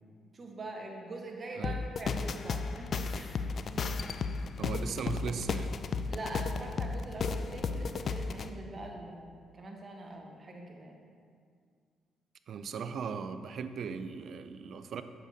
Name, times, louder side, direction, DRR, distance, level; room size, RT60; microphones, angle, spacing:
voice 1, 0.3-3.4 3.7-4.0 6.1-11.0, right 2 dB, 35° right, 1 dB, 1.1 m, -43 dB
sound 1, 1.6-8.5, left 4 dB, 50° left, 0.3 m, -34 dB
voice 2, 4.6-5.8 12.5-15.0, right 6 dB, 60° right, 10 dB, 0.4 m, -38 dB
8.4 x 6.5 x 2.8 m, 2.1 s
cardioid pair, 90°, 0 cm